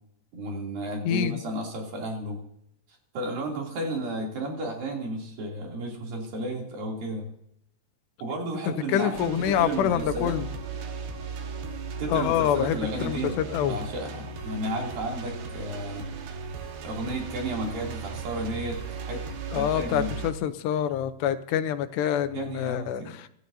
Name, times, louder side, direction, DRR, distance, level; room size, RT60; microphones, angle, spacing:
voice 1, 0.3-2.4 3.1-7.3 8.2-10.4 12.0-13.4 13.6-16.1 16.8-19.3 19.5-20.1 22.3-23.2, right 1 dB, 60° right, -1 dB, 4.6 m, -33 dB
voice 2, 1.0-1.4 8.7-10.5 12.1-13.8 19.5-23.3, left 10 dB, 85° left, 9 dB, 3.0 m, -26 dB
sound 1, 9.1-20.3, right 4 dB, 75° right, 3.3 m, -37 dB
25.0 x 13.0 x 2.8 m, 0.74 s
omnidirectional pair, 4.8 m